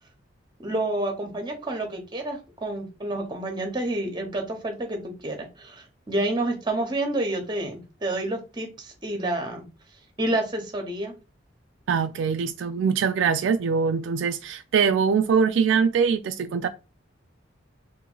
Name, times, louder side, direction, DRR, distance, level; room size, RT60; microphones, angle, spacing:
voice 1, 0.6-9.6 10.2-11.1, right 1 dB, 25° right, 0.9 m, -29 dB
voice 2, 11.9-16.7, right 6 dB, 70° right, 0.3 m, -23 dB
3.0 x 2.6 x 3.7 m
head